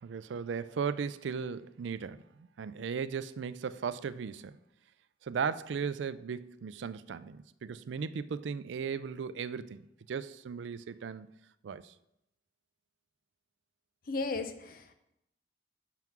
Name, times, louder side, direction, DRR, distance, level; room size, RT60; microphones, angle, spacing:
voice 1, 0.0-4.6 5.2-11.3 11.6-11.9, right 6 dB, 75° right, 0.4 m, -37 dB
voice 2, 14.1-14.9, left 3 dB, 50° left, 0.6 m, -35 dB
5.9 x 5.7 x 6.0 m
head